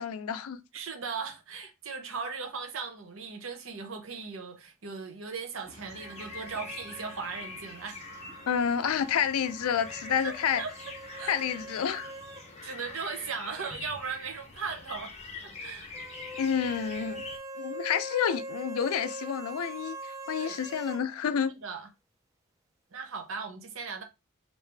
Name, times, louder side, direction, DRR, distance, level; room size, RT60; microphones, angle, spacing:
voice 1, 0.0-0.6 8.5-10.6 11.3-12.1 16.4-17.2 17.6-21.5, left 7 dB, 80° left, 0.4 m, -29 dB
voice 2, 0.7-8.0 10.2-10.7 11.2-11.3 12.6-15.1 15.4-15.9 20.4-20.6 21.6-21.9 22.9-24.0, right 5 dB, 60° right, 0.8 m, -38 dB
sound 1, 5.6-17.4, left 3 dB, 30° left, 0.7 m, -45 dB
sound 2, 5.9-12.5 12.8-12.9 15.9-21.0, right 1 dB, 15° right, 0.4 m, -43 dB
3.1 x 2.6 x 3.4 m
head